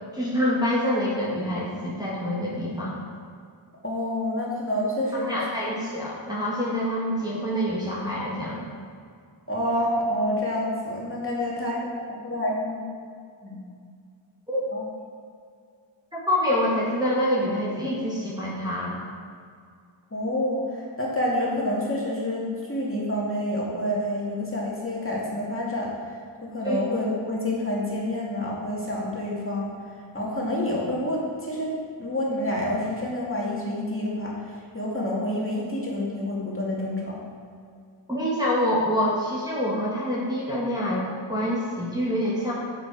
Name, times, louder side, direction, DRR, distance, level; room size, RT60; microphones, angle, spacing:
voice 1, 0.1-3.0 5.1-8.7 14.5-14.6 16.1-19.0 26.6-26.8 38.1-42.5, equal, 10° right, -7 dB, 1.8 m, -26 dB
voice 2, 3.8-5.4 9.5-12.8 13.4-13.6 14.7-14.8 20.1-25.9 26.4-29.8 30.1-31.7 32.0-37.1, left 1 dB, 25° left, -5 dB, 2.3 m, -28 dB
8.4 x 7.7 x 4.8 m, 2.2 s
wide cardioid pair, 60°, 48 cm